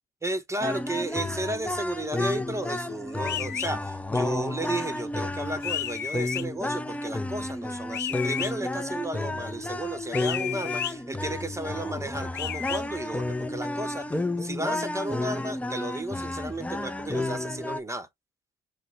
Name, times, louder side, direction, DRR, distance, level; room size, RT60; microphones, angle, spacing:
voice 1, 0.2-18.1, right 1 dB, 15° right, 1.0 m, -34 dB
sound 1, 0.6-17.8, left 2 dB, 5° left, 0.4 m, -31 dB
sound 2, 3.2-3.7 5.6-6.4 7.9-8.5 10.1-10.9 12.3-12.8, left 10 dB, 60° left, 0.6 m, -32 dB
5.8 x 2.1 x 3.2 m
cardioid pair, 90°, 20 cm